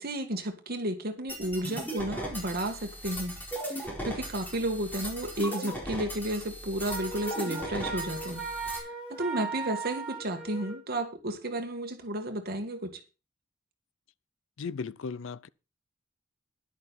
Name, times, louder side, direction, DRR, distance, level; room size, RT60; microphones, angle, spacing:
voice 1, 0.0-3.3 3.7-8.4 8.7-13.0, right 1 dB, 50° right, 1.9 m, -33 dB
sound 1, 1.3-8.8, right 1 dB, 10° left, 4.3 m, -38 dB
Wind instrument woodwind instrument, 6.9-10.8, right 4 dB, 5° right, 4.8 m, -37 dB
voice 2, 14.6-15.5, left 5 dB, 70° left, 0.5 m, -36 dB
12.0 x 11.0 x 4.2 m
head